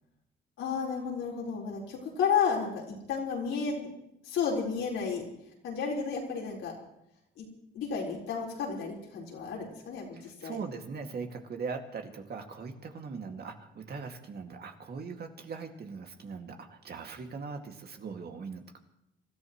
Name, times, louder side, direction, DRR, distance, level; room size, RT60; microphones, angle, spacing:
voice 1, 0.6-3.9 4.2-5.3 5.6-6.7 7.4-7.5 7.7-10.6, left 6 dB, 85° left, -3 dB, 4.2 m, -32 dB
voice 2, 10.1-18.8, right 5 dB, 55° right, 3 dB, 2.2 m, -40 dB
27.5 x 14.0 x 3.1 m, 0.82 s
cardioid pair, 90°, 20 cm